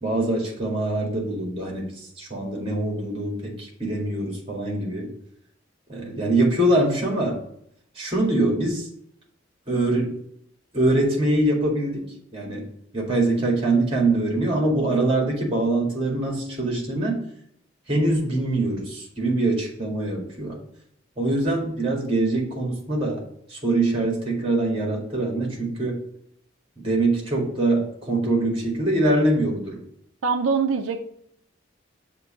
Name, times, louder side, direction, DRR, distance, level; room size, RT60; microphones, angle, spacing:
voice 1, 0.0-1.9 2.2-5.1 5.9-7.4 8.0-8.9 9.7-10.1 10.7-12.0 12.3-12.6 12.9-17.2 17.9-20.6 21.2-23.2 23.5-26.0 26.8-29.8, right 2 dB, 30° right, 0 dB, 1.9 m, -23 dB
voice 2, 30.2-31.0, right 5 dB, 85° right, 6 dB, 0.5 m, -23 dB
6.6 x 2.9 x 5.0 m, 0.71 s
head